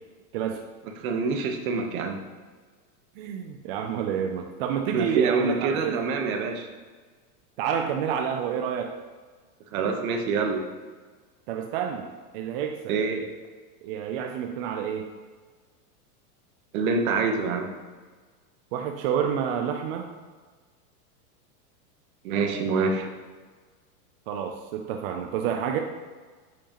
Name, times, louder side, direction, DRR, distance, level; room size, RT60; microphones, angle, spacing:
voice 1, 1.0-2.2 4.9-6.7 9.7-10.7 12.9-13.3 16.7-17.7 22.2-23.1, right 4 dB, 60° right, 5 dB, 1.1 m, -26 dB
voice 2, 3.2-6.0 7.6-9.0 11.5-13.0 13.8-15.1 18.7-20.1 24.3-25.8, right 8 dB, 40° right, 4 dB, 0.5 m, -29 dB
8.8 x 5.0 x 3.0 m, 1.5 s
supercardioid pair, 145°, 47 cm